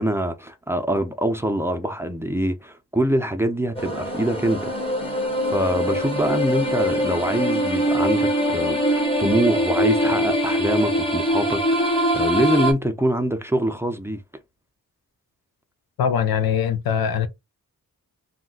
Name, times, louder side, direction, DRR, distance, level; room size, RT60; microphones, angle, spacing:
voice 1, 0.0-4.7 5.1-5.2 5.5-14.2, equal, 5° right, 0.5 m, -24 dB
sound 1, 3.7-12.7, equal, 15° left, 0.8 m, -23 dB
voice 2, 16.0-17.3, left 8 dB, 85° left, 0.6 m, -22 dB
2.4 x 2.1 x 3.8 m
cardioid pair, 65°, 35 cm